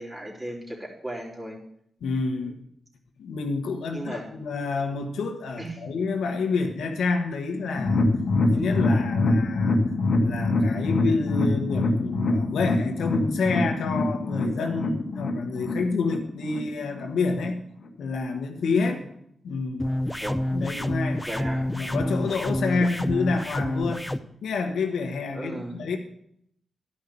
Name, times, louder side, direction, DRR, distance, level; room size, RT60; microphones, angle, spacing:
voice 1, 0.0-1.6 2.3-2.5 3.9-4.2 5.6-5.7 18.8-19.0 20.2-20.4 21.3-21.7 22.8-22.9 25.3-25.8, right 1 dB, 25° right, -2 dB, 3.3 m, -36 dB
voice 2, 2.0-2.5 3.2-8.0 8.5-9.8 10.2-17.6 18.0-19.0 19.4-19.9 20.5-21.3 21.7-24.1 24.4-26.0, left 4 dB, 85° left, 4 dB, 1.3 m, -28 dB
sound 1, 7.8-17.0 17.4-17.5 17.9-18.0, left 2 dB, 60° left, 1.5 m, -24 dB
sound 2, 19.8-24.2, left 1 dB, 10° left, 0.5 m, -28 dB
11.5 x 5.4 x 6.9 m, 0.72 s
cardioid pair, 80°, 0 cm